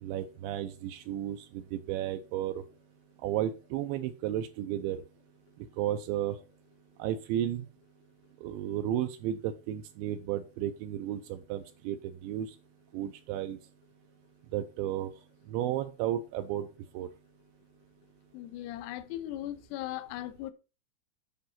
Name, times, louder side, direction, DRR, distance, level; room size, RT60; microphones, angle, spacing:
voice 1, 0.0-2.6 3.2-5.0 5.8-6.4 7.0-7.7 8.4-12.5 12.9-13.6 14.5-15.1 15.5-16.7 16.9-17.1, right 11 dB, 80° right, 3.0 m, -33 dB
voice 2, 18.3-20.5, left 14 dB, 75° left, 2.7 m, -38 dB
10.5 x 5.2 x 5.7 m
omnidirectional pair, 5.4 m